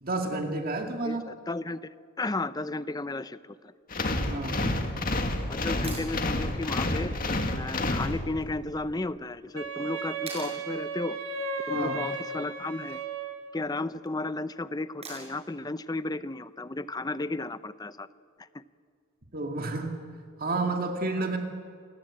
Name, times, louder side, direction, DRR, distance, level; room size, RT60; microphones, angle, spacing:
voice 1, 0.0-1.2 4.3-4.9 11.7-12.0 19.3-20.0 20.4-21.4, right 2 dB, 45° right, 3 dB, 2.2 m, -30 dB
voice 2, 1.0-3.7 5.2-7.1 7.6-11.2 11.7-13.0 13.5-18.1 18.4-18.6, left 2 dB, 20° left, 14 dB, 0.6 m, -34 dB
sound 1, 3.9-8.6, left 2 dB, 45° left, 2.0 m, -29 dB
sound 2, 5.8-6.1 8.4-8.5 10.3-10.6 12.6-13.0 15.0-15.5 17.6-17.7, right 3 dB, 30° right, 6.4 m, -42 dB
Wind instrument woodwind instrument, 9.5-13.6, right 3 dB, 85° right, 2.2 m, -35 dB
27.5 x 19.5 x 8.7 m, 2.4 s
head